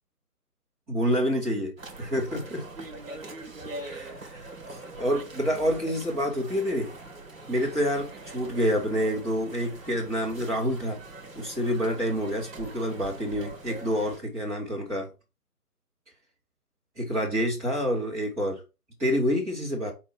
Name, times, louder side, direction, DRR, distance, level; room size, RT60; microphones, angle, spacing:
voice 1, 0.9-1.7 2.0-2.7 3.8-6.9 7.5-11.0 11.3-15.1 17.0-18.6 19.0-19.9, equal, 5° right, 1.1 m, -28 dB
sound 1, 1.8-14.2, right 2 dB, 55° right, 2.1 m, -43 dB
4.6 x 4.1 x 5.5 m
figure-of-eight pair, 150°, 46 cm